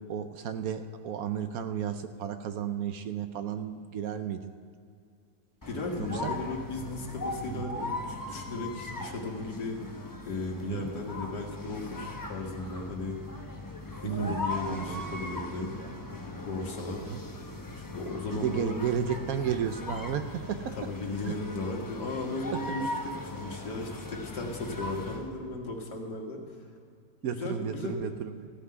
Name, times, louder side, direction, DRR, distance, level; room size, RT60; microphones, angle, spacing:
voice 1, 0.0-4.5 6.0-6.3 7.5-7.8 10.6-10.9 14.0-14.4 14.7-15.9 17.1-17.2 18.3-20.9 21.3-21.4 22.5-22.6 27.2-28.5, right 8 dB, 70° right, 9 dB, 1.0 m, -33 dB
sound 1, 5.6-25.3, left 2 dB, 20° left, 0.5 m, -39 dB
voice 2, 5.7-9.8 10.3-13.2 14.0-15.9 16.4-17.1 17.9-18.8 20.8-26.4 27.3-28.0, left 2 dB, 80° left, 1 dB, 2.2 m, -36 dB
15.0 x 5.8 x 9.5 m, 2.4 s
omnidirectional pair, 1.8 m